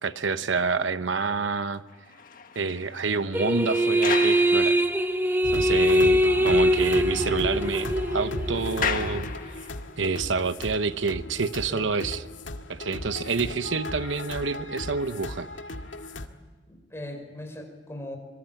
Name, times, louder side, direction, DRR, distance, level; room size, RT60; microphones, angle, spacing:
voice 1, 0.0-1.8 2.5-4.8 5.5-9.7 10.0-12.2 12.7-15.5, right 4 dB, 75° right, 11 dB, 1.0 m, -28 dB
sound 1, 1.9-5.4 5.9-6.0 6.4-6.5 6.7-10.0, left 6 dB, 50° left, 1.6 m, -36 dB
sound 2, 3.3-9.2, equal, 10° right, 1.0 m, -23 dB
sound 3, 5.4-16.3, left 1 dB, 80° left, 2.0 m, -36 dB
voice 2, 16.7-18.2, left 1 dB, 15° left, 4 dB, 5.2 m, -40 dB
26.0 x 24.0 x 9.1 m, 1.4 s
head